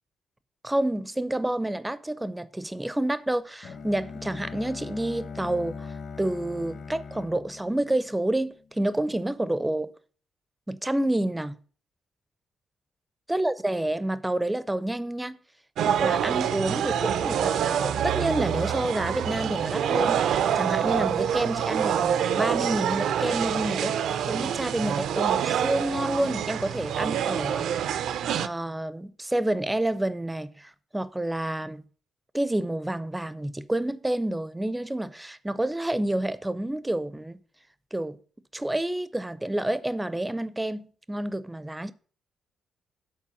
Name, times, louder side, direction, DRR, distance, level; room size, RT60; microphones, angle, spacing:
voice 1, 0.6-9.9 10.7-11.5 13.3-15.4 15.9-24.0 24.3-27.7 28.4-31.8 32.3-37.4 37.9-38.2 38.5-41.9, right 1 dB, 10° right, 0.4 m, -29 dB
Bowed string instrument, 3.6-8.6, left 5 dB, 55° left, 1.0 m, -40 dB
sound 1, 15.8-28.5, right 9 dB, 80° right, 0.5 m, -26 dB
7.4 x 4.3 x 6.9 m
cardioid pair, 155°, 0 cm